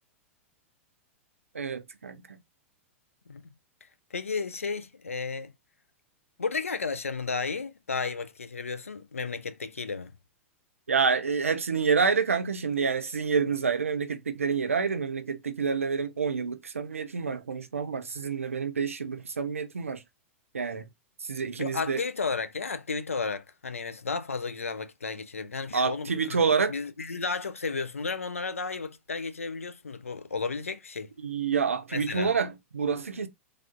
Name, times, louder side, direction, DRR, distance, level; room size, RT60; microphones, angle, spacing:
voice 1, 1.5-2.4 10.9-20.0 20.5-20.9 21.2-22.0 25.7-26.7 31.2-33.3, right 5 dB, 80° right, 0.5 m, -28 dB
voice 2, 4.1-5.5 6.4-10.1 21.6-26.4 26.7-31.1 31.9-32.3, left 4 dB, 80° left, 0.4 m, -33 dB
3.3 x 2.4 x 2.4 m
figure-of-eight pair, 100°, 7 cm